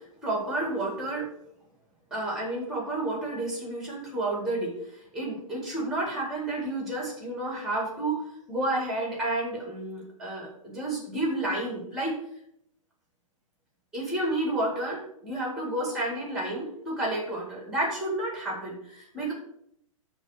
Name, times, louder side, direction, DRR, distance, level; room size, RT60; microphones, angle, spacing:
voice 1, 0.2-1.3 2.1-4.7 5.1-8.2 8.5-12.2 13.9-19.3, right 1 dB, ahead, -2 dB, 4.0 m, -30 dB
12.5 x 4.2 x 6.4 m, 0.71 s
hypercardioid pair, 155°, 18 cm